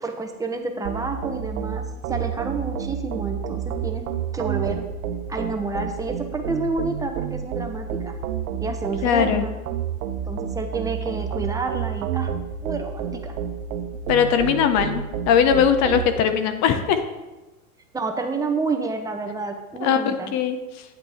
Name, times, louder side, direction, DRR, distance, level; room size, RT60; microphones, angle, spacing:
voice 1, 0.0-4.9 5.3-8.2 8.6-9.6 10.2-12.3 12.6-13.3 17.9-20.3, right 3 dB, 10° right, 3 dB, 0.9 m, -29 dB
sound 1, 0.8-16.1, right 8 dB, 75° right, 0.9 m, -30 dB
voice 2, 9.0-9.5 14.1-17.0 19.8-20.6, left 8 dB, 40° left, 9 dB, 1.0 m, -20 dB
9.1 x 8.0 x 3.6 m, 1.1 s
hypercardioid pair, 125°, 43 cm